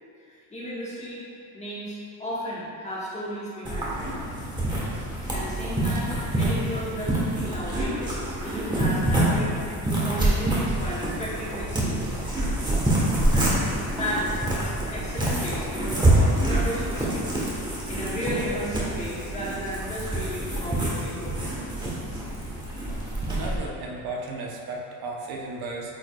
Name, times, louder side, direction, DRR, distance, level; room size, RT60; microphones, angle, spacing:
voice 1, 0.3-1.2 1.5-4.2 5.3-12.2 13.3-21.6, equal, 20° left, -8 dB, 1.4 m, -34 dB
sound 1, 3.6-23.6, right 1 dB, 10° right, 1.1 m, -26 dB
voice 2, 23.3-25.9, right 2 dB, 70° right, -1 dB, 0.9 m, -34 dB
8.6 x 4.9 x 2.3 m, 2.4 s
cardioid pair, 155°, 39 cm